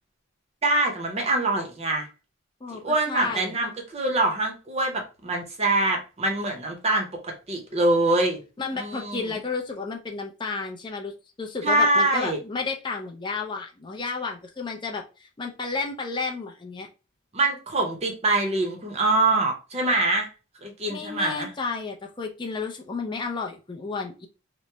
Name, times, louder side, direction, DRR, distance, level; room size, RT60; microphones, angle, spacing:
voice 1, 0.6-2.1 2.7-8.4 8.8-9.2 11.6-12.4 17.3-20.3 20.6-21.5, right 2 dB, 30° right, 2 dB, 0.7 m, -24 dB
voice 2, 2.6-3.5 8.6-11.1 11.4-16.9 20.9-24.3, left 4 dB, 20° left, 2 dB, 0.4 m, -32 dB
3.0 x 2.0 x 3.3 m, 0.32 s
head